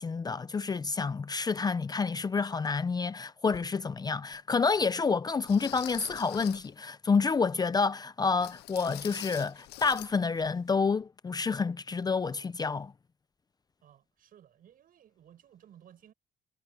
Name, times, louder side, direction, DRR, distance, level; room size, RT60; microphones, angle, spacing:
voice 1, 0.0-12.9, left 4 dB, 25° left, 0.6 m, -29 dB
sound 1, 3.5-3.7 4.3-4.4 5.5-6.7 8.4-10.1 10.4-10.6 11.0-11.1, left 17 dB, 75° left, 0.6 m, -44 dB
voice 2, 13.8-16.1, right 10 dB, 55° right, 7.1 m, -57 dB
cardioid pair, 110°, 17 cm